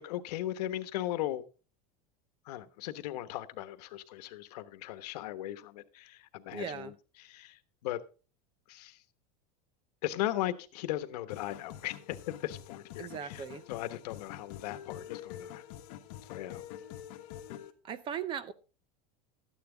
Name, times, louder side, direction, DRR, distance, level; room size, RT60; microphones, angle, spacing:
voice 1, 0.0-1.4 2.5-6.9 7.2-8.0 8.7-9.0 10.0-15.6 16.2-16.6, left 14 dB, 90° left, 1.1 m, -37 dB
voice 2, 6.5-6.9 13.0-13.6 17.8-18.5, right 8 dB, 25° right, 0.6 m, -38 dB
sound 1, 11.3-17.7, left 11 dB, 60° left, 1.4 m, -46 dB
13.0 x 9.4 x 3.8 m
supercardioid pair, 170°, 20 cm